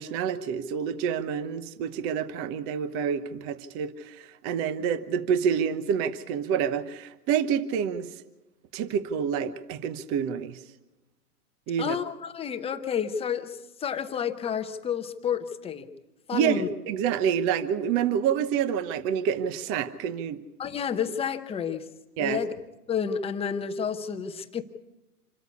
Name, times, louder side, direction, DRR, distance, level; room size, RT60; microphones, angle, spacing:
voice 1, 0.0-8.1 8.7-10.6 11.7-12.0 16.3-20.4 22.2-22.4, right 8 dB, 30° right, 14 dB, 1.0 m, -28 dB
voice 2, 11.8-15.9 16.3-16.7 20.6-21.9 22.2-22.5 22.9-24.6, left 7 dB, 15° left, 7 dB, 0.8 m, -30 dB
27.0 x 13.5 x 8.4 m, 1.0 s
hypercardioid pair, 140°, 46 cm